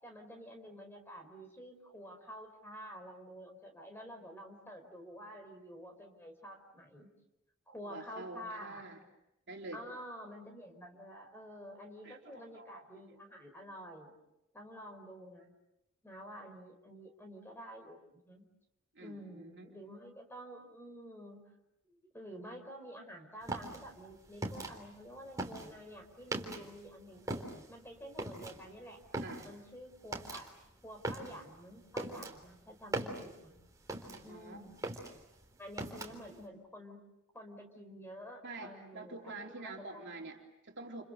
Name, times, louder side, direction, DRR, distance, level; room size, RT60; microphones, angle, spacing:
voice 1, 0.0-7.1 7.7-8.9 9.7-14.1 14.5-15.5 16.0-18.4 19.0-21.4 21.8-27.4 27.7-29.0 29.4-30.5 30.8-33.6 34.2-34.8 35.6-37.0 37.3-40.1, equal, 10° left, 4 dB, 4.9 m, -49 dB
voice 2, 7.8-9.0 9.5-9.8 12.0-13.2 19.0-19.8 29.2-29.5 34.1-34.6 38.4-41.0, right 2 dB, 50° right, 1 dB, 3.6 m, -47 dB
sound 1, 23.4-26.9 27.2-34.4 34.7-36.4, right 2 dB, 15° right, 3.7 m, -41 dB
30.0 x 29.5 x 6.6 m, 0.87 s
head